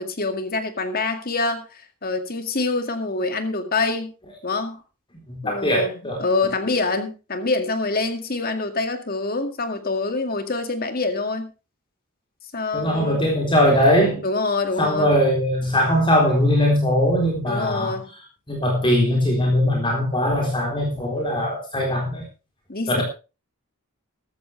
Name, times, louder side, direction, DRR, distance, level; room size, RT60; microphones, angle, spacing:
voice 1, 0.0-4.1 4.4-4.8 5.4-11.5 12.5-13.3 14.2-15.1 17.5-18.1 22.7-23.0, left 3 dB, 45° left, 2.2 m, -26 dB
voice 2, 5.3-6.2 12.7-14.2 14.8-17.9 18.5-22.2 22.9-23.0, equal, 25° left, 3.9 m, -20 dB
14.5 x 13.0 x 3.4 m
head